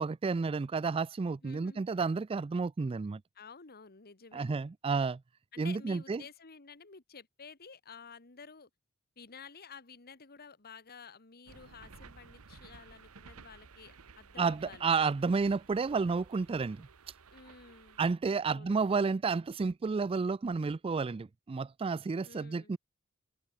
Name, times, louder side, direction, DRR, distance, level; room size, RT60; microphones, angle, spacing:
voice 1, 0.0-3.2 4.3-5.2 5.6-6.2 14.4-16.9 18.0-22.8, right 4 dB, 25° right, 0.3 m, -31 dB
voice 2, 1.4-1.8 3.3-4.5 5.5-8.7 9.2-14.9 17.3-18.0 18.5-18.8 22.2-22.7, left 5 dB, 45° left, 1.6 m, -52 dB
sound 1, 11.5-18.1, right 4 dB, 75° right, 1.0 m, -55 dB
head